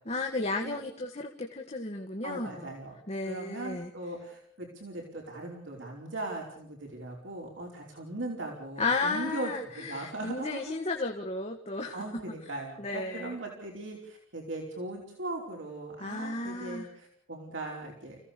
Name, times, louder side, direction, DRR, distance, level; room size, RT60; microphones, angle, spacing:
voice 1, 0.1-2.7 3.1-3.9 8.8-12.2 12.8-13.3 16.0-16.9, left 3 dB, 35° left, 2 dB, 1.8 m, -33 dB
voice 2, 2.2-10.6 11.9-18.2, right 2 dB, 70° right, -1 dB, 4.8 m, -39 dB
29.5 x 16.5 x 7.0 m, 0.65 s
head